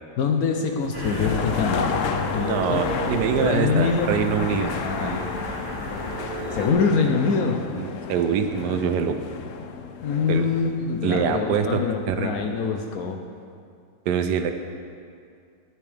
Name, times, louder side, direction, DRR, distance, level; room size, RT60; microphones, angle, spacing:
voice 1, 0.2-1.9 2.3-2.9 3.4-4.2 4.6-5.2 6.5-7.6 10.0-13.2, left 5 dB, 65° left, 3 dB, 1.0 m, -24 dB
sound 1, 0.8-12.6, left 6 dB, 90° left, 0.6 m, -32 dB
sound 2, 0.9-6.7, right 1 dB, 15° right, 1.2 m, -32 dB
voice 2, 2.4-5.5 7.7-9.2 10.3-10.5 11.0-11.8 12.1-12.7 14.1-14.5, right 7 dB, 75° right, 7 dB, 1.1 m, -25 dB
10.5 x 10.0 x 3.3 m, 2.3 s
omnidirectional pair, 1.9 m